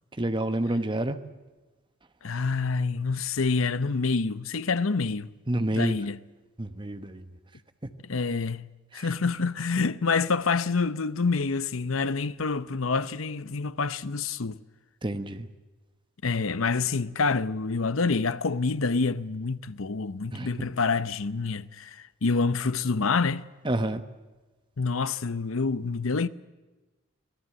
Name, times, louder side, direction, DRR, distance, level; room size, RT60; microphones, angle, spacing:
voice 1, 0.1-1.2 5.5-6.1 6.6-7.3 7.8-7.9 8.9-9.1 15.0-15.5 20.3-20.6 23.6-24.0, right 1 dB, 25° right, 1.1 m, -29 dB
voice 2, 2.2-5.3 5.7-6.1 8.1-8.7 8.9-14.6 16.2-23.5 24.8-26.3, left 4 dB, 85° left, 0.8 m, -27 dB
25.0 x 18.0 x 7.7 m
head